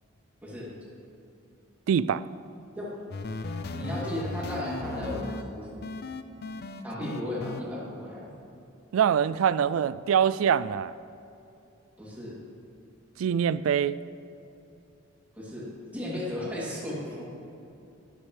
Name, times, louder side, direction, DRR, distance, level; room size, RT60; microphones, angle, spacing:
voice 1, 1.9-2.2 8.9-10.9 13.2-14.0, right 8 dB, 70° right, 17 dB, 0.3 m, -24 dB
sound 1, 3.1-5.4 5.8-7.6, left 3 dB, 50° left, 0.5 m, -36 dB
voice 2, 3.7-5.9 6.8-8.3 12.0-12.4 15.3-15.7 15.9-17.2, left 1 dB, 10° right, -7 dB, 2.9 m, -35 dB
12.5 x 12.0 x 3.3 m, 2.8 s
head